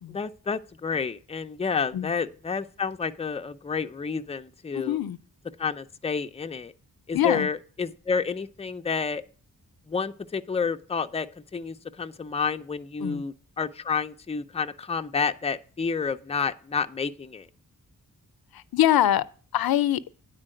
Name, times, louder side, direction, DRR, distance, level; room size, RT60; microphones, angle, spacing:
voice 1, 0.1-5.0 5.6-6.7 7.1-9.2 9.9-11.3 11.5-17.5, left 5 dB, 15° left, 0.5 m, -30 dB
voice 2, 4.7-5.2 7.1-7.5 13.0-13.2 18.5-19.2 19.5-20.0, left 12 dB, 90° left, 0.6 m, -23 dB
9.9 x 4.5 x 7.6 m
wide cardioid pair, 125°, 35 cm